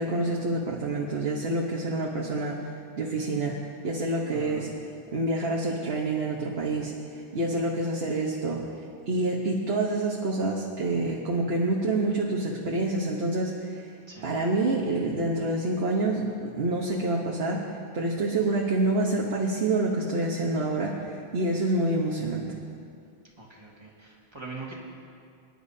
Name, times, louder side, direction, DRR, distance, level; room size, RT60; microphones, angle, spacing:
voice 1, 0.0-2.7 3.0-4.7 5.1-8.6 9.1-13.9 14.2-22.5, right 2 dB, 80° right, -3 dB, 1.4 m, -27 dB
voice 2, 4.3-4.7 14.1-14.3 18.5-18.6 23.4-24.8, right 3 dB, 25° right, -3 dB, 1.9 m, -42 dB
24.5 x 11.0 x 2.8 m, 2.3 s
omnidirectional pair, 1.0 m